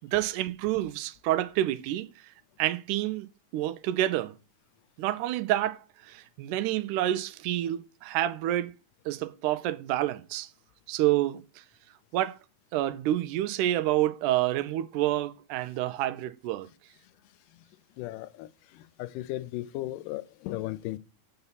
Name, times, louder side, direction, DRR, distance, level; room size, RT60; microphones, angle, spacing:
voice 1, 0.1-2.1 2.6-3.3 3.5-4.3 5.0-5.8 6.1-8.7 9.1-10.5 10.9-11.4 12.1-12.4 12.7-16.7, right 14 dB, 80° right, 2.0 m, -28 dB
voice 2, 18.0-18.5 18.8-21.0, left 16 dB, 90° left, 2.1 m, -36 dB
6.9 x 5.6 x 4.0 m
omnidirectional pair, 3.6 m